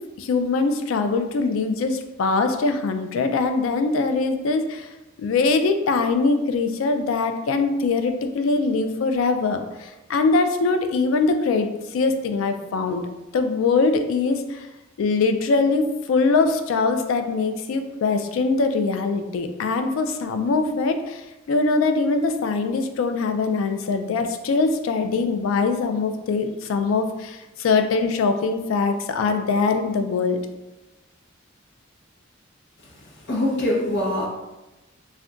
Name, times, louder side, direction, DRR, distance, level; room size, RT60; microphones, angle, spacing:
voice 1, 0.2-4.8 5.2-9.6 10.1-11.7 11.9-13.0 13.3-14.4 15.0-21.2 21.5-30.4, left 4 dB, 85° left, 7 dB, 0.3 m, -22 dB
voice 2, 33.3-34.3, left 1 dB, 60° left, -3 dB, 0.7 m, -23 dB
2.4 x 2.1 x 3.7 m, 1.0 s
head